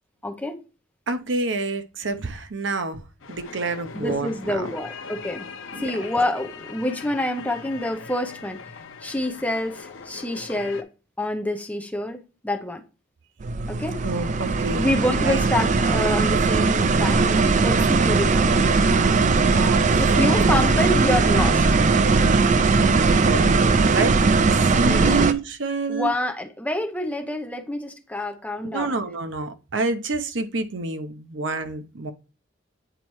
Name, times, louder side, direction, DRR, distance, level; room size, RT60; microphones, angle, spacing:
voice 1, 0.2-0.6 3.9-5.5 5.8-8.6 9.0-10.9 11.2-12.8 13.7-14.0 14.7-18.6 20.0-21.7 24.7-25.3 25.9-29.0, left 1 dB, 10° left, 0.7 m, -27 dB
voice 2, 1.1-3.0 3.3-4.7 5.7-5.9 14.0-14.9 15.2-15.4 19.5-20.5 22.8-24.2 24.4-26.1 28.7-32.1, right 3 dB, 70° right, 0.8 m, -28 dB
sound 1, 3.2-10.8, left 5 dB, 85° left, 0.8 m, -40 dB
sound 2, 13.4-25.3, right 4 dB, 40° right, 0.4 m, -19 dB
9.1 x 4.2 x 3.1 m
head